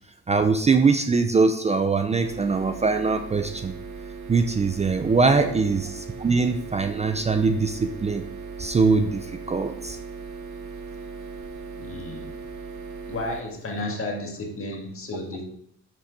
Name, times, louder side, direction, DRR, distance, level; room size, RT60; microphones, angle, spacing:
voice 1, 0.3-3.8 4.3-8.2 8.6-10.0, right 4 dB, 20° right, 7 dB, 0.5 m, -22 dB
sound 1, 2.2-13.4, right 5 dB, 70° right, 0.8 m, -38 dB
voice 2, 5.0-5.5 11.8-12.4 13.1-15.4, left 2 dB, 45° left, 1 dB, 1.7 m, -33 dB
6.0 x 4.3 x 4.7 m, 0.69 s
cardioid pair, 90°, 30 cm